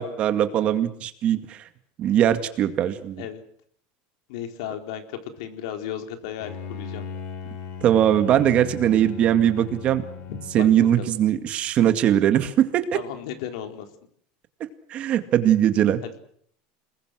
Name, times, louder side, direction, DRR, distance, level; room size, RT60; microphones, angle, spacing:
voice 1, 0.0-1.6 2.0-3.2 7.8-10.0 10.5-12.9 14.6-16.0, right 10 dB, 40° right, 9 dB, 2.1 m, -21 dB
voice 2, 4.3-7.0 10.3-10.7 11.0-11.1 12.9-13.9 16.0-16.2, left 9 dB, 80° left, 6 dB, 4.0 m, -35 dB
Bowed string instrument, 6.4-11.3, left 6 dB, 50° left, 4.3 m, -38 dB
29.0 x 21.0 x 6.5 m, 0.63 s
cardioid pair, 155°, 3 cm